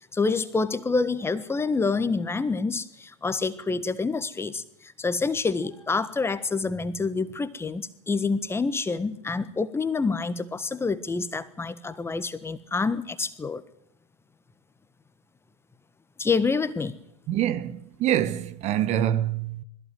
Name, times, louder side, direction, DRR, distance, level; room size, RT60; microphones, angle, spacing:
voice 1, 0.1-13.6 16.2-17.0, left 4 dB, 15° left, 1.3 m, -27 dB
voice 2, 17.3-19.6, right 11 dB, 45° right, 1.4 m, -25 dB
20.5 x 15.0 x 9.4 m
hypercardioid pair, 90°, 16 cm